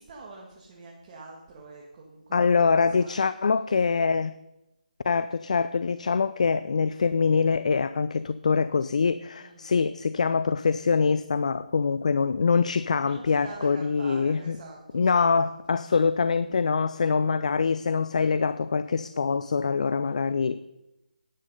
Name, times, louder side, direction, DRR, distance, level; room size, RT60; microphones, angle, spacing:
voice 1, 0.0-3.2 9.4-9.7 13.0-15.5 20.0-20.4, right 3 dB, 30° right, -2 dB, 1.8 m, -46 dB
voice 2, 2.3-4.4 5.0-14.6 14.9-20.6, left 5 dB, 55° left, 14 dB, 0.4 m, -24 dB
10.0 x 8.7 x 5.4 m, 0.92 s
figure-of-eight pair, 160°, 5 cm